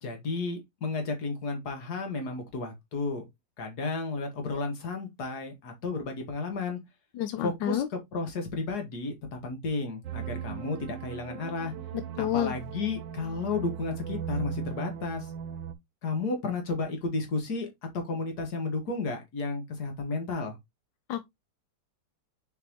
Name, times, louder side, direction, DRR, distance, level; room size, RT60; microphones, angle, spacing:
voice 1, 0.0-3.3 3.6-6.8 7.3-11.7 12.2-15.3 16.0-17.7 17.9-20.6, left 3 dB, 60° left, 2.2 m, -33 dB
voice 2, 7.2-7.9 12.2-12.5 21.1-21.2, left 11 dB, 90° left, 1.4 m, -29 dB
sound 1, 10.0-15.7, right 8 dB, 90° right, 1.4 m, -38 dB
7.2 x 4.6 x 3.0 m
omnidirectional pair, 1.9 m